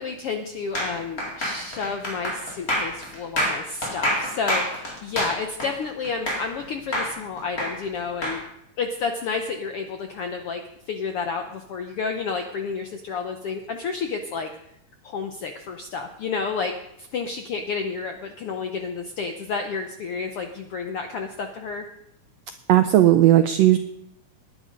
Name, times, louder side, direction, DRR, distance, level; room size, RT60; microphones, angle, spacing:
voice 1, 0.0-8.4 8.8-14.5 15.0-21.9, left 5 dB, 75° left, 6 dB, 1.3 m, -30 dB
sound 1, 0.8-6.6 6.9-8.4, equal, 25° left, 3.8 m, -27 dB
voice 2, 22.7-23.8, right 13 dB, 85° right, 9 dB, 1.5 m, -16 dB
18.5 x 10.0 x 5.3 m, 0.79 s
omnidirectional pair, 3.7 m